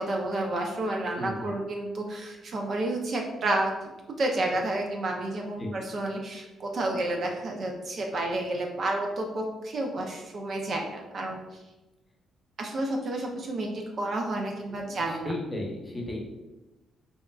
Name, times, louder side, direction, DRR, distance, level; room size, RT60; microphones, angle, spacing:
voice 1, 0.0-3.9 4.2-11.4 12.6-15.3, right 2 dB, 50° right, 1 dB, 0.5 m, -30 dB
voice 2, 1.2-1.5 5.6-5.7 14.7-16.2, left 1 dB, 10° left, -2 dB, 0.8 m, -35 dB
4.1 x 2.4 x 2.3 m, 1.1 s
cardioid pair, 90°, 0 cm